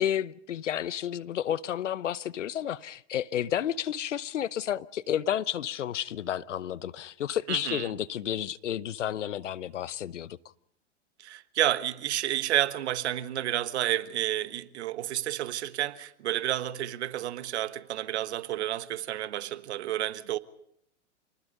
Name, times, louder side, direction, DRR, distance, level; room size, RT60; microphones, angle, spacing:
voice 1, 0.0-10.4, left 10 dB, 85° left, 0.9 m, -31 dB
voice 2, 7.5-7.8 11.2-20.4, right 13 dB, 65° right, 1.4 m, -30 dB
27.5 x 20.0 x 5.4 m
hypercardioid pair, 120°, 36 cm